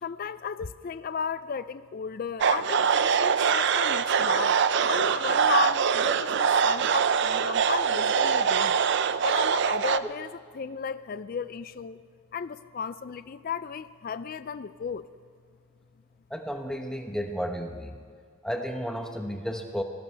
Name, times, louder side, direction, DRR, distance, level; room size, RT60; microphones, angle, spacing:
voice 1, 0.0-4.5 4.9-8.8 9.2-12.0 12.3-15.1, left 6 dB, 40° left, 14 dB, 0.3 m, -34 dB
sound 1, 2.4-10.0, right 6 dB, 50° right, 0.4 m, -23 dB
voice 2, 16.3-18.0 18.4-19.8, equal, 5° left, 3 dB, 1.1 m, -32 dB
21.5 x 17.5 x 3.4 m, 2.1 s
head